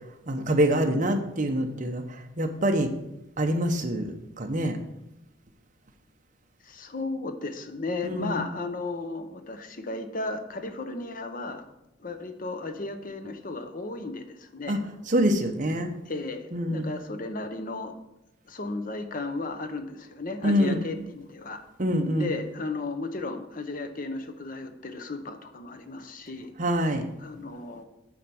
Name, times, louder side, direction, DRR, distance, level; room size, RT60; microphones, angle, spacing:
voice 1, 0.3-2.9 3.4-4.8 8.0-8.4 14.7-14.8 15.1-15.9 16.5-16.9 20.4-20.8 21.8-22.3 26.6-27.1, equal, 40° right, 5 dB, 1.0 m, -25 dB
voice 2, 6.6-11.6 12.0-14.8 16.1-17.9 18.5-21.6 22.1-26.5 27.2-27.8, left 3 dB, 45° left, 7 dB, 0.9 m, -34 dB
8.7 x 4.7 x 7.0 m, 0.90 s
head